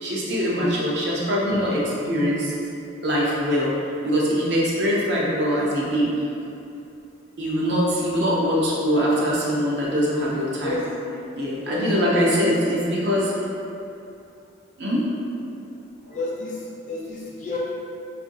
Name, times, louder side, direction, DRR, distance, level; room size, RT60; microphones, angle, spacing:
voice 1, 0.0-2.5 3.0-3.7 4.0-6.1 7.4-10.8 11.3-13.3 14.8-15.0 16.1-16.2, equal, 55° right, -5 dB, 0.6 m, -23 dB
voice 2, 11.7-12.5 16.1-17.6, left 3 dB, 40° left, -5 dB, 0.5 m, -31 dB
3.7 x 2.5 x 2.6 m, 2.7 s
head